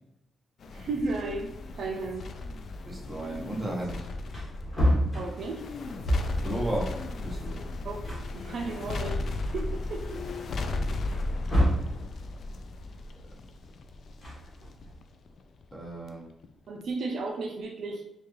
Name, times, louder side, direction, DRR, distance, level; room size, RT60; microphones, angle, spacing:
sound 1, 0.6-16.1 16.4-16.5, left 2 dB, 55° left, 0.3 m, -36 dB
voice 1, 0.7-2.2 5.1-5.6 7.8-8.0 8.3-9.2 9.5-10.2 16.7-18.0, right 3 dB, 60° right, 1 dB, 0.5 m, -34 dB
voice 2, 2.9-4.1 6.4-7.0 7.2-7.6 15.7-16.3, right 1 dB, 10° right, -3 dB, 0.9 m, -34 dB
Wood, 4.3-6.5 7.6-7.7 8.0-9.2 9.7-9.8 11.1-12.0 14.0-14.9, equal, 25° left, 1.4 m, -28 dB
4.5 x 2.4 x 3.1 m, 0.85 s
cardioid pair, 140°, 0 cm